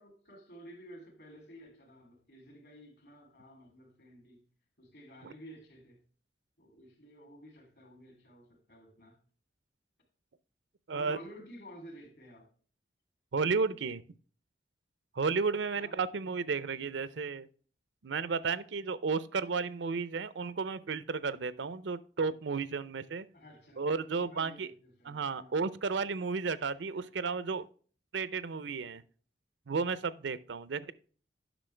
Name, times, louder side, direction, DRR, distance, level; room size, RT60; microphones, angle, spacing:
voice 1, 0.0-4.4 4.8-6.0 6.6-9.2 10.9-12.5 15.7-16.0 23.3-25.5, equal, 65° left, 2.9 m, -52 dB
voice 2, 13.3-14.0 15.2-17.5 18.0-23.3 23.8-24.7 25.1-27.7 28.1-29.0 29.7-30.9, right 4 dB, 80° right, 0.6 m, -33 dB
10.0 x 6.3 x 3.3 m
head